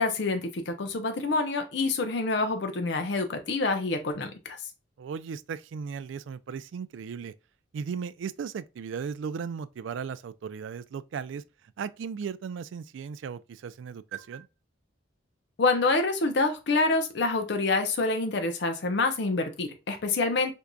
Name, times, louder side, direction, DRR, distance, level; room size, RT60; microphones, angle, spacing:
voice 1, 0.0-4.6 15.6-20.5, left 3 dB, 60° left, 0.6 m, -27 dB
voice 2, 5.0-7.3 7.7-11.4 11.8-14.5, right 6 dB, 70° right, 0.3 m, -36 dB
4.5 x 2.5 x 2.2 m
head